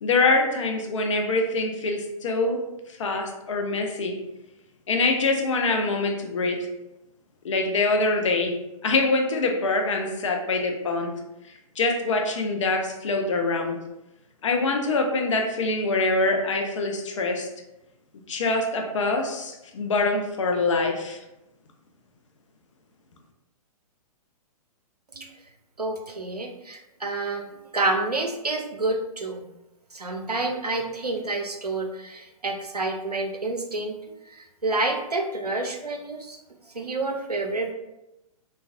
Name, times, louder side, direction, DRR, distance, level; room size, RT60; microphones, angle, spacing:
voice 1, 0.0-2.6 3.0-4.2 4.9-6.6 7.4-8.6 8.8-11.1 11.8-13.8 14.4-17.5 18.3-21.2, left 3 dB, 55° left, 3 dB, 0.5 m, -24 dB
voice 2, 25.8-29.5 29.9-34.0 34.3-34.4 34.6-36.4 36.7-37.7, right 2 dB, 90° right, 3 dB, 0.5 m, -28 dB
3.2 x 2.3 x 2.4 m, 0.93 s
figure-of-eight pair, 115°, 19 cm